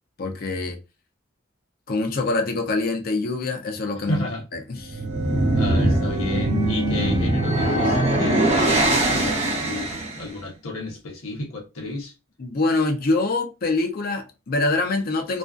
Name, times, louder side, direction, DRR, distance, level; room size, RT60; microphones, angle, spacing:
voice 1, 0.2-0.8 1.9-4.2 4.5-5.0 12.4-15.4, left 3 dB, 45° left, 0.5 m, -25 dB
voice 2, 4.1-4.4 5.5-12.1, left 2 dB, 90° left, 0.9 m, -32 dB
sound 1, 4.8-10.2, right 1 dB, 30° right, 0.7 m, -21 dB
2.4 x 2.4 x 2.3 m
head